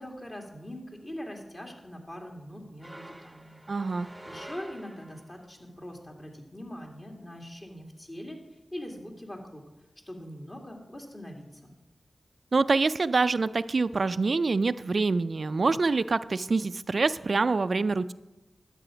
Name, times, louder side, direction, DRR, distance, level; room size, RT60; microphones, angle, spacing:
voice 1, 0.0-3.6 4.0-8.4 8.7-9.6 10.1-11.7, equal, 35° left, 1 dB, 2.4 m, -42 dB
sound 1, 2.8-5.4, right 1 dB, 15° right, 0.7 m, -47 dB
voice 2, 3.7-4.1 12.5-18.1, right 3 dB, 65° right, 14 dB, 0.3 m, -25 dB
11.5 x 7.7 x 5.0 m, 1.0 s
cardioid pair, 45°, 0 cm